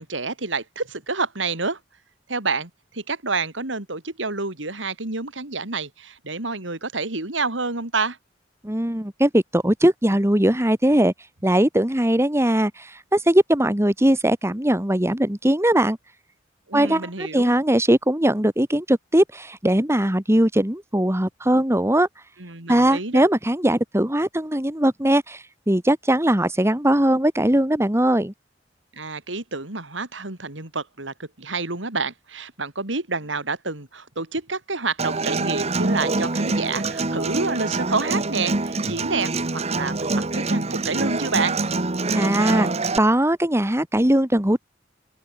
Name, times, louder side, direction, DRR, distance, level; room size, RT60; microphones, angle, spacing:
voice 1, 0.0-1.8 2.3-8.2 16.7-17.5 22.4-23.3 28.9-41.6, right 3 dB, 90° right, 3.6 m, -28 dB
voice 2, 8.6-11.1 11.4-16.0 16.7-22.1 22.7-28.3 42.1-42.7 43.0-44.6, right 1 dB, 15° right, 2.1 m, -20 dB
Human voice / Acoustic guitar, 35.0-43.0, right 3 dB, 35° right, 1.3 m, -25 dB
open air
head